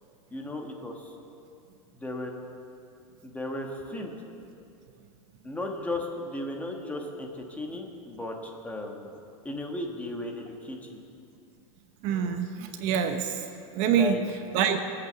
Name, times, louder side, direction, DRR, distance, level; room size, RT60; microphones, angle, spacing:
voice 1, 0.3-1.1 1.9-2.3 3.2-4.1 5.4-9.2 9.4-11.0 13.9-14.2, left 2 dB, 10° left, 1 dB, 1.4 m, -35 dB
voice 2, 12.0-13.4 13.7-14.2 14.5-14.8, right 8 dB, 45° right, 7 dB, 0.9 m, -25 dB
20.0 x 8.4 x 6.9 m, 2.6 s
supercardioid pair, 145°, 18 cm